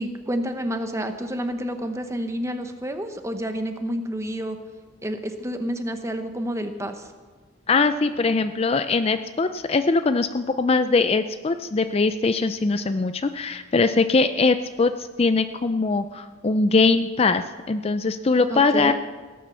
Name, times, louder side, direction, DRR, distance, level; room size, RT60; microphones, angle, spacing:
voice 1, 0.0-4.6 5.0-7.1 18.5-18.9, equal, 15° right, 7 dB, 1.0 m, -29 dB
voice 2, 7.7-18.9, left 3 dB, 30° left, 10 dB, 0.4 m, -21 dB
17.0 x 9.4 x 6.9 m, 1.4 s
head